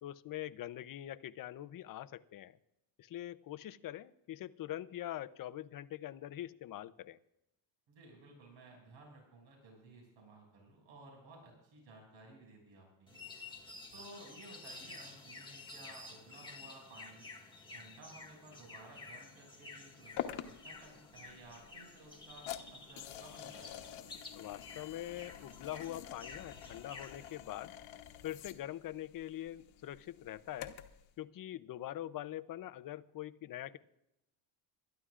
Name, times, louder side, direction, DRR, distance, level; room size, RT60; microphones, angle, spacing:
voice 1, 0.0-2.6 3.0-7.2 24.3-27.7 28.2-30.8 31.2-33.8, left 13 dB, 45° left, 13 dB, 0.6 m, -44 dB
voice 2, 7.9-13.2 13.9-17.3 17.7-20.1 20.4-23.9, right 2 dB, 75° right, 0 dB, 6.2 m, -56 dB
sound 1, 13.1-27.3, left 3 dB, 10° left, 1.8 m, -52 dB
sound 2, 20.2-31.0, left 11 dB, 85° left, 1.2 m, -48 dB
27.0 x 13.0 x 2.5 m, 0.87 s
cardioid pair, 135°, 47 cm